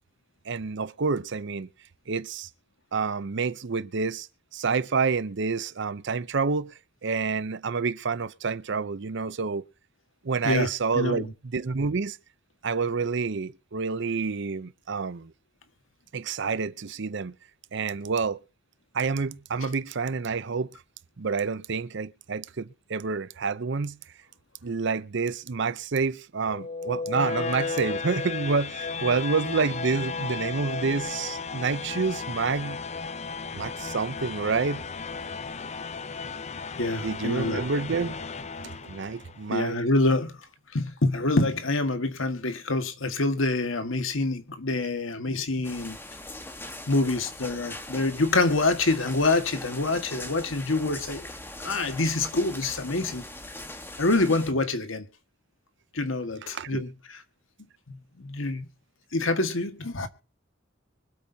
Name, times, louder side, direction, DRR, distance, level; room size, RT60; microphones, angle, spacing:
voice 1, 0.4-1.7 2.1-2.5 2.9-4.3 4.5-9.6 10.2-12.2 12.6-15.3 16.1-17.3 17.7-18.4 18.9-20.7 21.2-24.0 24.6-32.8 33.5-34.8 36.9-38.3 38.6-39.9 56.4-56.8, right 4 dB, 65° right, 0.6 m, -28 dB
voice 2, 10.9-11.3 36.8-37.6 39.5-40.4 40.7-46.0 46.9-51.3 51.6-53.2 54.0-55.1 55.9-57.2 57.9-58.7 59.1-60.1, left 2 dB, 85° left, 1.7 m, -26 dB
sound 1, 26.5-39.4, left 4 dB, 35° left, 0.6 m, -34 dB
sound 2, 45.6-54.5, left 1 dB, 10° left, 1.3 m, -41 dB
24.5 x 8.5 x 2.8 m
head